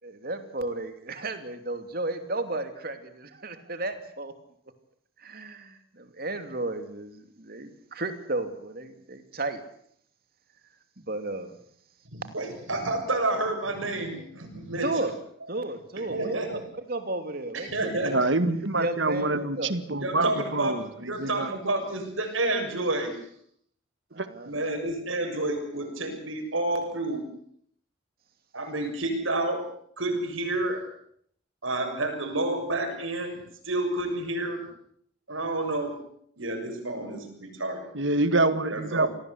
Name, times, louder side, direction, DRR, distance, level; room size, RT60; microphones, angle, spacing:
voice 1, 0.0-4.3 5.2-9.6 11.0-11.5 14.8-15.1 15.5-17.7 18.7-19.7 24.1-24.5, right 2 dB, 50° right, 8 dB, 2.9 m, -33 dB
voice 2, 12.1-14.9 16.1-16.6 17.5-18.2 20.0-20.8 21.0-23.2 24.5-27.2 28.5-29.6 30.0-30.8 31.6-33.4 33.7-34.6 35.3-35.9 36.4-37.9 38.7-39.1, right 2 dB, 85° right, 4 dB, 7.2 m, -29 dB
voice 3, 18.0-21.5 24.2-24.3 37.9-39.1, right 2 dB, 70° right, 12 dB, 1.9 m, -26 dB
26.5 x 18.5 x 8.3 m, 0.67 s
head